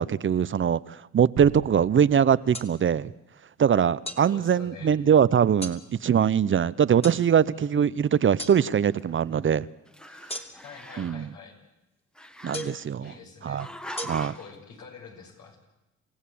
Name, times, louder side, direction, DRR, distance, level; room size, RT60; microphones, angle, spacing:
voice 1, 0.0-3.1 3.6-9.7 11.0-11.3 12.4-13.1 13.4-13.7 14.0-14.3, right 8 dB, 40° right, 18 dB, 0.7 m, -22 dB
sound 1, 1.4-3.2 3.5-3.6, right 9 dB, 65° right, 1.5 m, -42 dB
sound 2, 2.5-2.7 4.1-4.2 5.6-5.8 7.0-7.2 8.4-8.6 10.3-10.7 12.5-12.8 14.0-14.1, equal, 20° left, 2.8 m, -35 dB
voice 2, 4.3-5.0 7.5-8.0 10.6-11.6 13.0-13.8 14.2-15.6, left 5 dB, 80° left, 2 dB, 7.0 m, -46 dB
Growling, 8.4-9.6 9.9-11.3 12.2-13.2 13.6-14.5, left 1 dB, 5° left, 1.3 m, -43 dB
28.0 x 16.0 x 8.5 m, 0.99 s
cardioid pair, 90°, 30 cm